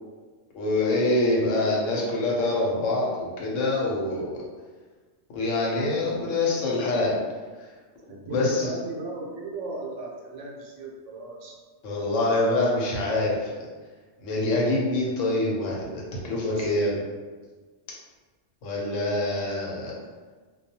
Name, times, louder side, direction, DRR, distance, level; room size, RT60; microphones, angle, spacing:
voice 1, 0.5-4.4 5.3-7.2 8.3-8.7 11.8-13.5 14.2-17.0 18.6-19.9, left 2 dB, 85° left, -3 dB, 1.0 m, -25 dB
voice 2, 8.1-11.6 16.6-16.7 19.8-20.0, right 2 dB, 80° right, -1 dB, 0.9 m, -36 dB
2.3 x 2.2 x 2.8 m, 1.4 s
omnidirectional pair, 1.3 m